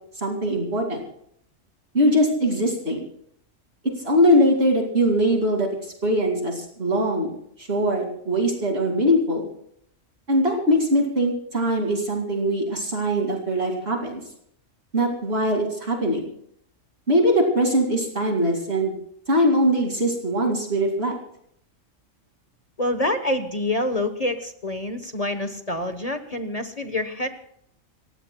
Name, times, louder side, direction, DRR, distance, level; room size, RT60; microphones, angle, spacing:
voice 1, 0.2-1.0 1.9-3.1 3.8-9.5 10.3-14.2 14.9-16.3 17.1-18.9 19.3-21.2, equal, 50° right, 0 dB, 2.7 m, -22 dB
voice 2, 22.8-27.3, left 1 dB, 30° left, 8 dB, 1.1 m, -26 dB
29.0 x 16.0 x 2.3 m, 0.69 s
omnidirectional pair, 1.4 m